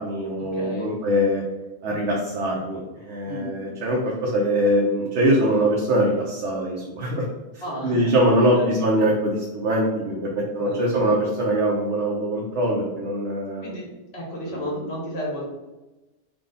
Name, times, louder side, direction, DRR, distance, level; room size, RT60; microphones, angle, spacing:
voice 1, 0.0-1.4 1.8-7.2 7.8-10.3 10.5-13.7, equal, 80° right, -3 dB, 1.0 m, -22 dB
voice 2, 0.5-0.9 3.2-3.6 7.6-8.1 8.6-8.7 9.3-9.4 10.7-11.0 13.6-13.9 14.1-15.4, equal, 70° left, -3 dB, 1.4 m, -32 dB
3.6 x 2.4 x 3.8 m, 1.1 s
omnidirectional pair, 1.1 m